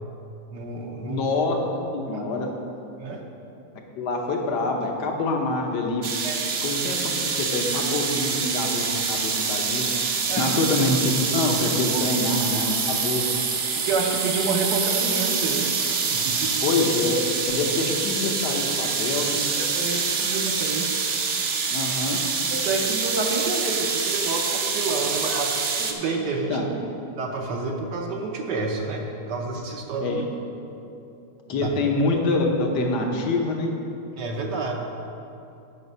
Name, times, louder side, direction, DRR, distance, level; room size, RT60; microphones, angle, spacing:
voice 1, 0.5-1.2 2.1-2.3 3.0-3.2 6.2-6.4 10.3-10.5 11.9-12.0 13.8-15.7 16.1-16.5 19.6-20.9 22.5-26.7 27.2-30.2 31.6-31.7 34.1-34.7, right 3 dB, 75° right, 1 dB, 1.4 m, -29 dB
voice 2, 1.0-1.6 1.9-2.5 4.0-6.0 6.6-9.9 10.4-13.3 16.6-17.2 17.5-19.4 21.7-22.2 26.5-26.7 30.0-30.2 31.5-33.7, left 2 dB, 70° left, 2 dB, 1.5 m, -25 dB
sound 1, 6.0-25.9, right 5 dB, 55° right, 0.8 m, -26 dB
9.2 x 5.7 x 5.5 m, 2.8 s
omnidirectional pair, 1.9 m